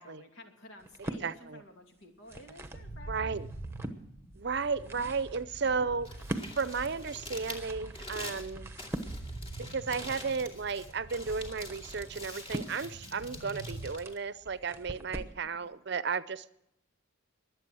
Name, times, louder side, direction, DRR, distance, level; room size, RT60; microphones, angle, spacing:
voice 1, 0.0-3.4 4.9-5.1 5.6-5.9 15.5-15.7, equal, 75° left, 3 dB, 2.6 m, -53 dB
sound 1, 0.8-1.3 2.0-2.9 3.4-4.0 4.6-15.4, right 1 dB, 10° right, 1.0 m, -43 dB
voice 2, 1.2-1.6 3.1-3.5 4.4-6.1 6.5-8.7 9.6-16.5, right 5 dB, 55° right, 15 dB, 0.6 m, -34 dB
sound 2, 2.7-13.9, right 2 dB, 50° left, 3.8 m, -46 dB
Crumpling crinkling, 5.9-15.0, left 1 dB, 25° left, 2.3 m, -47 dB
22.5 x 8.2 x 6.2 m, 0.81 s
head